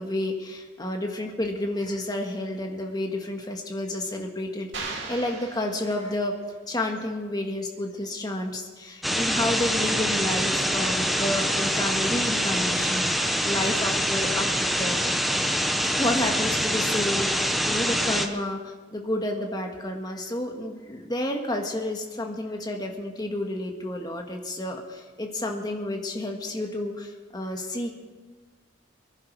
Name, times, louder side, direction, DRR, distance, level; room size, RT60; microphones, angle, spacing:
voice 1, 0.0-6.3 6.7-15.0 16.0-27.9, left 1 dB, 20° left, 2 dB, 1.6 m, -30 dB
sound 1, 4.7-6.5, right 3 dB, 70° right, 2.0 m, -38 dB
sound 2, 9.0-18.3, equal, ahead, 0.8 m, -25 dB
23.5 x 11.0 x 4.7 m, 1.4 s
head